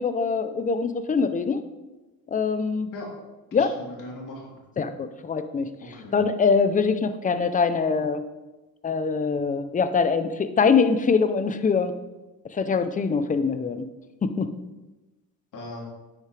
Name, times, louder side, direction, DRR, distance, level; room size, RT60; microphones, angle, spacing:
voice 1, 0.0-1.6 2.3-2.9 3.5-3.7 4.8-5.7 6.1-8.2 8.8-11.9 12.4-13.9 14.2-14.5, left 5 dB, 20° left, 10 dB, 0.6 m, -23 dB
voice 2, 3.5-4.5 5.9-6.2 15.5-15.8, left 2 dB, 55° left, -3 dB, 3.4 m, -39 dB
9.8 x 8.4 x 3.3 m, 1.1 s
cardioid pair, 120°, 37 cm